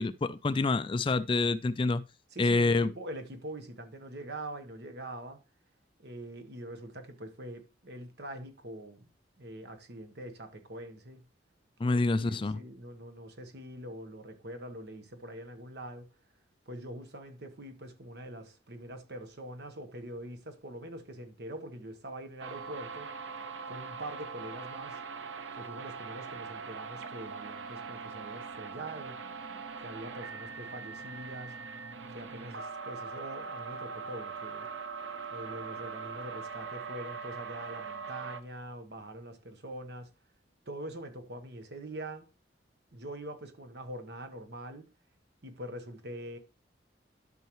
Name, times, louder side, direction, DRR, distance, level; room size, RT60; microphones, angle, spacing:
voice 1, 0.0-2.0 2.4-2.9 11.8-12.6, left 3 dB, 25° left, 0.3 m, -27 dB
voice 2, 2.3-5.4 6.0-9.1 9.4-11.2 11.8-16.1 16.7-23.1 23.7-25.0 25.6-29.2 29.8-31.6 32.1-34.7 35.3-40.1 40.7-42.3 42.9-44.9 45.4-46.4, right 1 dB, 60° right, 1.2 m, -44 dB
sound 1, 22.4-38.4, right 5 dB, 90° right, 0.8 m, -41 dB
12.0 x 5.6 x 3.1 m
head